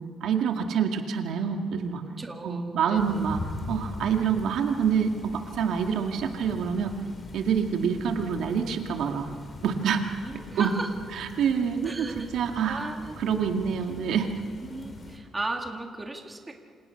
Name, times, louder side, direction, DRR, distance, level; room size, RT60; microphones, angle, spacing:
voice 1, 0.2-2.0 2.4-3.4 3.7-6.9 7.3-9.3 9.6-10.0 10.6-10.7 11.1-12.9 13.2-14.3, right 7 dB, 75° right, 4 dB, 2.1 m, -26 dB
voice 2, 2.2-3.2 10.3-10.9 11.8-12.3 12.7-13.5 14.7-16.5, right 2 dB, 15° right, 2 dB, 1.9 m, -36 dB
sound 1, 2.9-15.2, left 2 dB, 25° left, 3.6 m, -43 dB
28.0 x 27.0 x 5.9 m, 2.3 s
cardioid pair, 165°, 0 cm